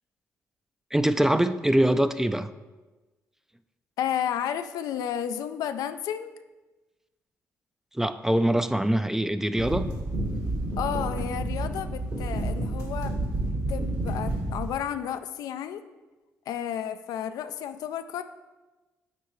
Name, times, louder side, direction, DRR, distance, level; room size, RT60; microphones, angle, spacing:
voice 1, 0.9-2.5 7.9-9.9, right 1 dB, 5° right, 0.4 m, -23 dB
voice 2, 4.0-6.3 10.8-13.2 13.5-15.8 16.5-18.2, left 9 dB, 75° left, 0.3 m, -32 dB
sound 1, 9.6-14.7, right 1 dB, 60° right, 1.7 m, -30 dB
8.2 x 4.3 x 3.1 m
supercardioid pair, 55°, 6 cm